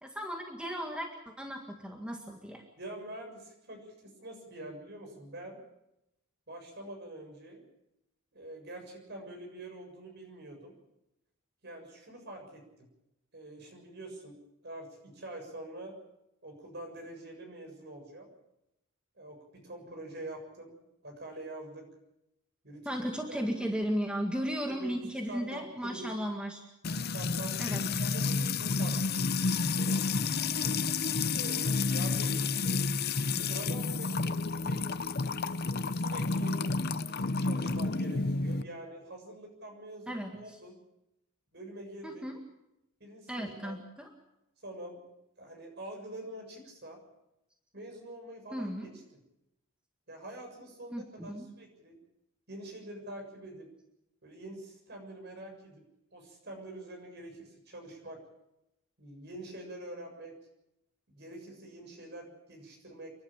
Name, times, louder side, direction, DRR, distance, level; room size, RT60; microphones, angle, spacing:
voice 1, 0.0-1.1 1.4-2.6 22.9-26.6 27.6-27.8 40.1-40.3 42.0-42.4 43.3-44.1 48.5-49.0 50.9-51.5, equal, 5° right, 2 dB, 1.9 m, -35 dB
voice 2, 2.8-5.6 6.5-7.6 8.3-10.8 11.6-12.9 13.3-14.4 14.6-15.9 16.4-18.3 19.2-20.7 21.0-21.9 22.6-23.7 24.7-25.0 25.3-26.1 26.8-29.1 31.3-32.4 33.3-34.9 35.9-36.6 37.4-40.8 41.5-42.3 43.0-43.8 44.6-45.0 45.4-47.0 47.7-49.0 50.1-52.0 52.5-53.7 54.2-55.8 56.1-58.2 59.0-60.3 61.1-63.1, right 1 dB, 50° right, 3 dB, 7.2 m, -45 dB
Music / Water tap faucet / Trickle dribble, 26.8-38.6, left 4 dB, 50° left, 0.8 m, -30 dB
29.5 x 12.0 x 8.9 m, 0.88 s
head